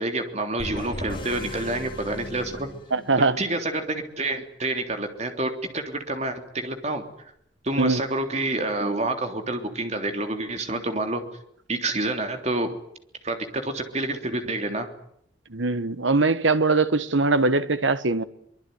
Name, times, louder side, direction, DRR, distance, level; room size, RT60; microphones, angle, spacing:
voice 1, 0.0-2.7 3.2-7.0 7.6-11.2 11.7-12.7 13.2-14.9, right 2 dB, 35° right, 3.4 m, -28 dB
sound 1, 0.6-3.4, left 1 dB, 25° left, 6.3 m, -37 dB
voice 2, 2.9-3.4 7.8-8.0 15.5-18.2, right 3 dB, 75° right, 1.4 m, -21 dB
24.5 x 22.5 x 9.5 m
head